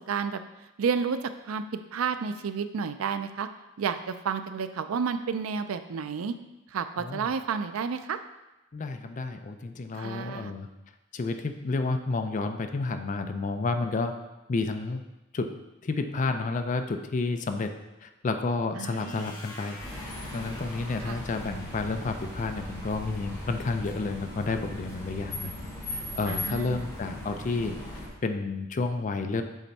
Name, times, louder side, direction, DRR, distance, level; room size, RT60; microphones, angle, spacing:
voice 1, 0.1-0.4 0.8-1.2 1.5-3.5 3.8-6.4 6.7-8.2 10.0-10.5 18.8-19.3 21.1-21.2 26.3-26.8, right 6 dB, 90° right, 10 dB, 0.4 m, -31 dB
voice 2, 7.0-7.3 8.7-10.7 11.1-14.1 14.5-15.0 15.3-15.5 15.8-17.7 18.0-19.8 20.0-25.5 25.9-27.8 28.2-29.4, left 3 dB, 40° left, 7 dB, 0.4 m, -30 dB
sound 1, 18.8-22.7, left 2 dB, 70° left, 1.2 m, -48 dB
sound 2, 19.8-28.1, left 1 dB, 15° left, 1.6 m, -39 dB
7.2 x 3.4 x 4.1 m, 1.0 s
head